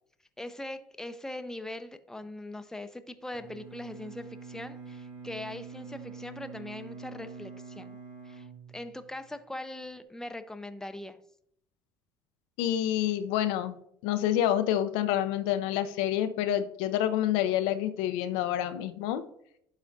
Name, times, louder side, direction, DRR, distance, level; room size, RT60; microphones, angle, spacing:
voice 1, 0.4-7.9 8.2-8.5 8.7-11.2, left 1 dB, 5° left, 10 dB, 0.6 m, -41 dB
Bowed string instrument, 3.3-9.4, right 5 dB, 65° right, 2.3 m, -45 dB
voice 2, 12.6-13.8 14.0-19.2, left 11 dB, 70° left, 10 dB, 0.5 m, -28 dB
11.5 x 4.1 x 2.6 m, 0.70 s
hypercardioid pair, 65°, 10 cm